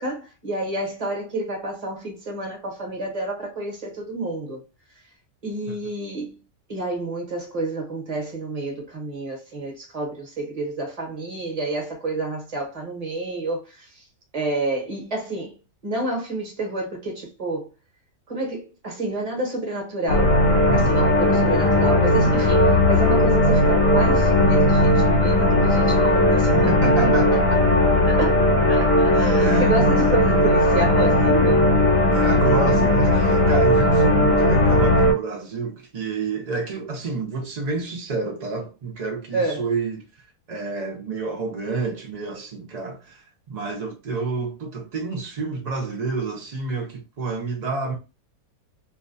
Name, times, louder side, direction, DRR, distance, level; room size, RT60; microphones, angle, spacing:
voice 1, 0.0-4.6 5.4-6.4 6.7-14.0 14.3-17.7 18.3-20.4 20.7-27.1 28.1-28.4 28.7-31.7 39.3-39.7, right 2 dB, 35° right, 0.8 m, -29 dB
sound 1, 20.1-35.1, left 1 dB, 70° left, 1.1 m, -17 dB
voice 2, 26.7-27.6 29.4-30.4 32.1-40.0 40.5-48.0, right 3 dB, 75° right, 0.3 m, -29 dB
2.6 x 2.2 x 2.5 m
omnidirectional pair, 1.5 m